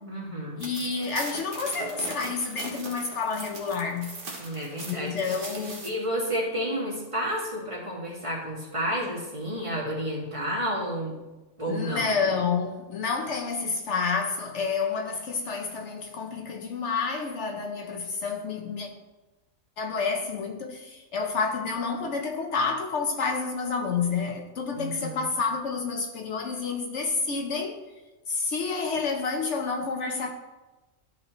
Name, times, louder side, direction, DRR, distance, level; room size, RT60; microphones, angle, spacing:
voice 1, 0.0-0.6 4.4-11.2 11.6-12.1 24.7-25.3, equal, 25° right, 1.8 m, -31 dB
voice 2, 0.6-4.2 4.9-5.9 11.7-18.9 19.8-27.8 28.3-30.3, left 4 dB, 65° left, 1.0 m, -29 dB
sound 1, 0.6-5.9, right 2 dB, 45° right, 1.4 m, -40 dB
12.5 x 4.3 x 3.1 m
omnidirectional pair, 1.4 m